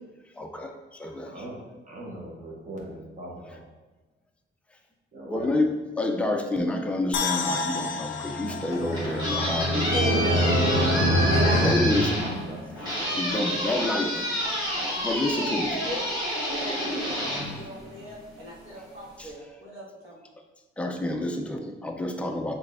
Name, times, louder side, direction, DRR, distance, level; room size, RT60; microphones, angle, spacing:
voice 1, 0.4-1.4 5.3-10.2 11.4-12.1 13.2-14.2 15.0-15.8 18.7-18.9 19.2-19.3 20.8-22.6, left 2 dB, 5° left, 3 dB, 0.3 m, -29 dB
voice 2, 1.3-1.6 1.8-3.6 5.1-5.5, right 1 dB, 35° right, -3 dB, 0.9 m, -40 dB
sound 1, 7.1-10.3 10.7-10.8, left 5 dB, 65° left, 0.5 m, -32 dB
sound 2, 8.2-12.8, equal, 90° right, 1.3 m, -25 dB
sound 3, 8.7-18.3, equal, 20° right, 1.3 m, -29 dB
voice 3, 9.9-10.6 11.3-12.7 13.6-16.0 16.3-20.2, right 1 dB, 70° right, -5 dB, 1.5 m, -36 dB
6.5 x 3.4 x 2.4 m, 1.2 s
wide cardioid pair, 180°, 21 cm